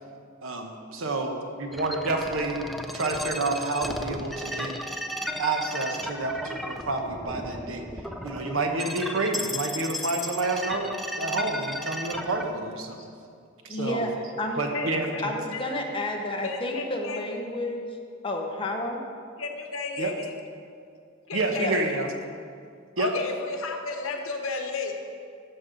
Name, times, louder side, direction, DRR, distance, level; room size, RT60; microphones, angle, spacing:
voice 1, 0.4-2.6 2.9-4.8 5.4-7.9 8.2-13.0 13.6-14.1 14.6-15.1 20.0-20.1 21.3-22.1 23.0-23.1, right 2 dB, 75° right, 4 dB, 1.0 m, -29 dB
sound 1, 1.7-12.5, equal, ahead, 0.3 m, -35 dB
voice 2, 13.7-14.1 14.4-14.6 15.2-18.0 18.2-19.0 21.5-21.8, left 1 dB, 25° left, 2 dB, 0.9 m, -31 dB
voice 3, 14.7-15.2 15.5-15.6 16.4-17.2 19.4-20.3 21.3-22.0 23.0-24.9, left 3 dB, 80° left, 3 dB, 1.1 m, -33 dB
14.0 x 6.2 x 3.9 m, 2.3 s
head